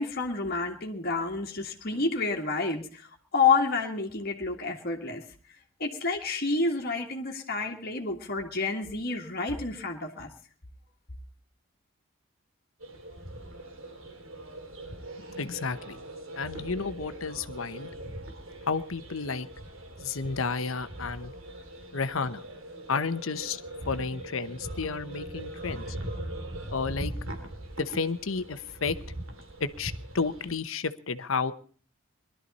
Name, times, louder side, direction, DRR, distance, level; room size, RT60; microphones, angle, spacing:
voice 1, 0.0-5.2 5.8-10.3, left 4 dB, 50° left, 2 dB, 1.8 m, -29 dB
sound 1, 12.8-30.6, right 1 dB, 85° right, 2.7 m, -41 dB
voice 2, 15.3-16.0 16.4-17.9 18.7-19.5 20.0-21.3 21.9-22.4 22.9-23.6 23.9-25.9 26.7-27.1 27.8-28.9 29.6-31.5, left 4 dB, 75° left, 11 dB, 0.9 m, -31 dB
21.5 x 12.5 x 4.2 m, 0.42 s
head